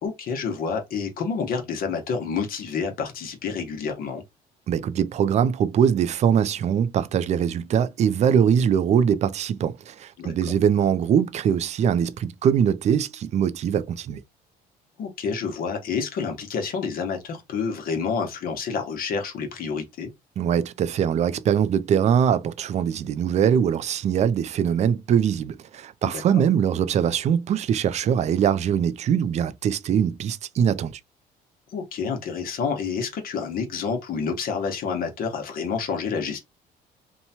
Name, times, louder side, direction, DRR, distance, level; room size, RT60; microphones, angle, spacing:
voice 1, 0.0-4.2 10.2-10.6 15.0-20.1 26.0-26.4 31.7-36.4, left 5 dB, 60° left, 0.9 m, -29 dB
voice 2, 4.7-14.2 20.4-30.9, right 8 dB, 40° right, 0.4 m, -22 dB
2.9 x 2.2 x 2.7 m
cardioid pair, 110°, 17 cm